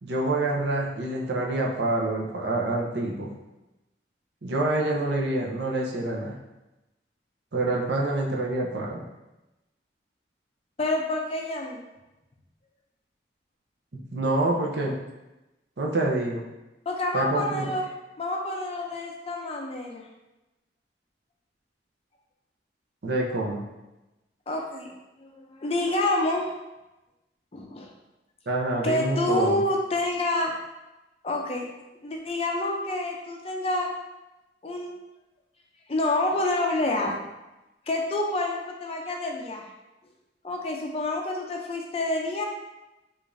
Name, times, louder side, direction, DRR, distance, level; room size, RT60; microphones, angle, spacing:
voice 1, 0.0-3.3 4.4-6.3 7.5-9.0 14.1-15.0 15.8-16.5 17.1-17.7 23.0-23.6 28.5-29.6, right 2 dB, 65° right, -1 dB, 0.6 m, -27 dB
voice 2, 10.8-11.8 16.9-17.9 18.2-20.0 24.5-24.9 25.2-26.5 27.5-27.9 28.8-30.5 31.2-31.7 32.0-33.9 34.6-34.9 35.9-37.1 37.9-39.7 40.4-42.4, left 2 dB, 30° left, 0 dB, 0.4 m, -28 dB
4.8 x 2.5 x 2.5 m, 1.0 s
head